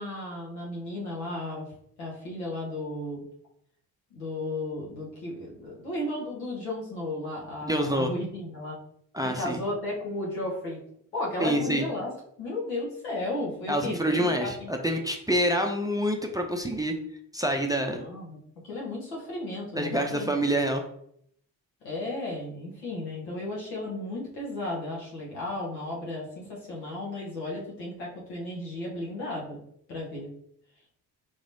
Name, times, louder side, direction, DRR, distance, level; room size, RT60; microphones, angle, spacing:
voice 1, 0.0-1.6 2.0-3.2 4.1-8.8 9.4-10.8 11.1-12.1 12.4-14.7 17.8-18.4 18.6-20.7 21.8-29.6 29.9-30.3, left 2 dB, 85° left, -4 dB, 1.2 m, -34 dB
voice 2, 7.6-8.1 9.1-9.6 11.4-11.8 13.7-16.9 17.3-18.0 19.7-20.8, equal, 10° right, 3 dB, 0.5 m, -27 dB
3.9 x 3.1 x 2.6 m, 0.71 s
hypercardioid pair, 40°, 49 cm